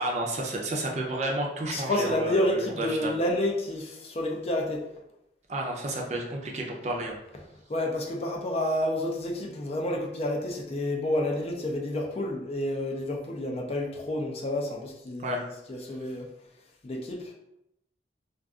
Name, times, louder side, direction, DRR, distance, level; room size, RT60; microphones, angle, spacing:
voice 1, 0.0-3.1 5.5-7.2 15.2-15.4, right 1 dB, 40° right, 0 dB, 0.5 m, -31 dB
voice 2, 1.7-4.8 7.7-16.3 16.8-17.3, left 1 dB, 35° left, 1 dB, 0.4 m, -29 dB
2.4 x 2.3 x 3.5 m, 0.84 s
head